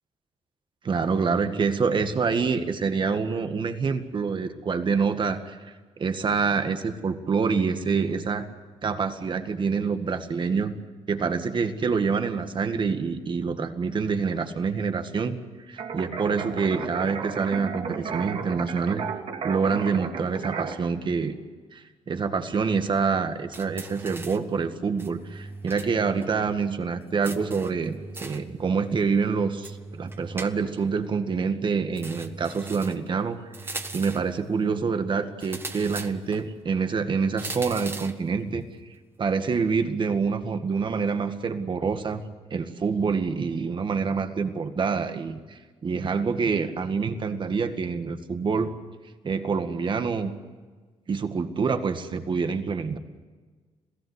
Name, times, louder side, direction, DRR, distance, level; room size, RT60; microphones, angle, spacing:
voice 1, 0.8-5.6 6.0-8.5 8.8-10.7 11.1-15.4 15.7-19.0 19.4-21.4 21.7-38.7 39.2-42.2 42.5-48.7 49.2-50.3 51.1-53.0, right 5 dB, 45° right, 8 dB, 1.9 m, -26 dB
sound 1, 15.8-20.7, right 6 dB, 60° right, 2.3 m, -33 dB
sound 2, 23.5-24.5 25.0-26.0 26.2-26.3 27.2-28.5 29.6-30.9 32.0-33.1 33.5-34.3 35.4-36.4 37.4-38.2, right 2 dB, 20° right, 1.5 m, -39 dB
27.0 x 16.5 x 8.2 m, 1.4 s
cardioid pair, 90°, 12 cm